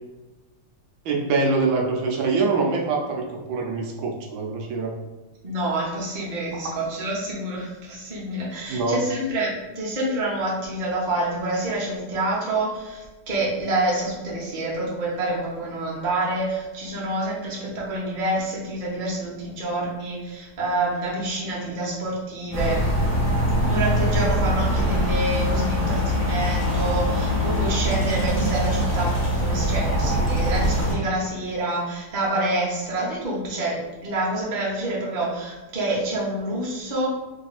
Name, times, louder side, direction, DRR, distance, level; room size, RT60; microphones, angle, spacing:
voice 1, 1.0-4.9 6.5-6.6 8.7-9.0, right 4 dB, 75° right, 0 dB, 1.4 m, -24 dB
voice 2, 5.4-22.8 23.7-37.1, right 1 dB, 30° right, -5 dB, 0.8 m, -27 dB
sound 1, 22.5-30.9, equal, 25° left, 0.3 m, -23 dB
3.3 x 3.2 x 4.1 m, 1.2 s
omnidirectional pair, 2.2 m